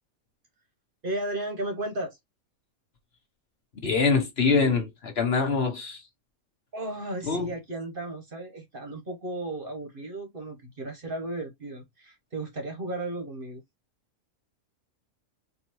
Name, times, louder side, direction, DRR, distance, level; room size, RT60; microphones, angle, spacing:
voice 1, 1.0-2.2 6.7-13.6, right 1 dB, 45° right, 1.0 m, -34 dB
voice 2, 3.8-6.0 7.2-7.5, left 4 dB, 50° left, 1.1 m, -24 dB
4.5 x 2.7 x 2.9 m
omnidirectional pair, 1.5 m